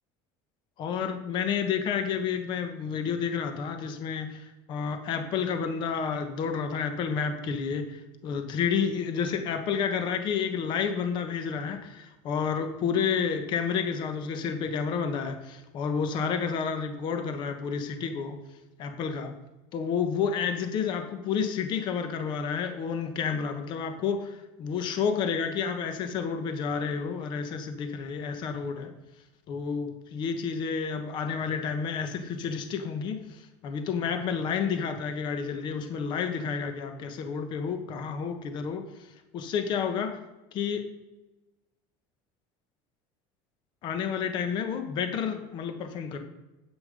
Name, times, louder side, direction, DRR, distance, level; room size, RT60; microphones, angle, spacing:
voice 1, 0.8-18.4 18.8-19.3 19.7-28.9 29.5-33.2 33.6-38.8 39.3-40.2 40.5-40.8 43.8-46.2, left 6 dB, 40° left, 7 dB, 1.1 m, -30 dB
9.9 x 8.3 x 5.2 m, 1.0 s
cardioid pair, 165°, 12 cm